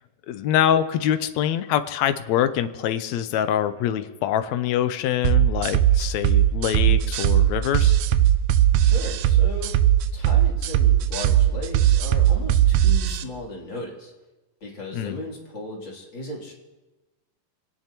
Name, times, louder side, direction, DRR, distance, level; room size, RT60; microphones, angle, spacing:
voice 1, 0.3-8.0 14.9-15.2, left 10 dB, 80° left, 11 dB, 1.6 m, -24 dB
sound 1, 5.2-13.2, right 11 dB, 80° right, 2.1 m, -19 dB
voice 2, 8.8-9.8 10.1-14.1 14.6-16.5, left 1 dB, 35° left, -2 dB, 3.4 m, -36 dB
24.5 x 18.0 x 3.0 m, 1.1 s
omnidirectional pair, 3.9 m